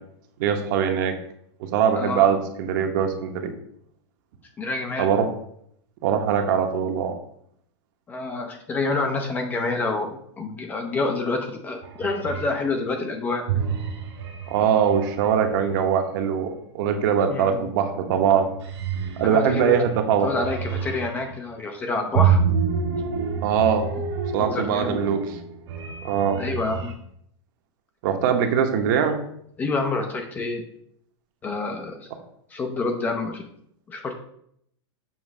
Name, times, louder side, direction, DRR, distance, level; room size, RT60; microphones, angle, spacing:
voice 1, 0.4-1.1 1.6-3.6 5.0-5.3 6.0-7.1 14.5-18.5 19.2-20.3 23.4-23.9 24.3-25.3 26.0-26.4 28.0-29.2, right 8 dB, 45° right, 6 dB, 0.9 m, -22 dB
voice 2, 1.9-2.4 4.6-5.1 8.1-13.4 17.3-17.6 19.2-19.8 20.2-22.4 24.4-25.0 26.4-26.9 29.6-30.6 31.4-32.1 32.5-33.4 33.9-34.1, left 3 dB, 10° left, 4 dB, 0.5 m, -27 dB
sound 1, 11.8-12.7 13.5-16.1 17.8-18.1 18.4-21.4 22.1-26.9, right 6 dB, 65° right, 1.8 m, -28 dB
7.2 x 3.1 x 6.1 m, 0.71 s
supercardioid pair, 170°, 15 cm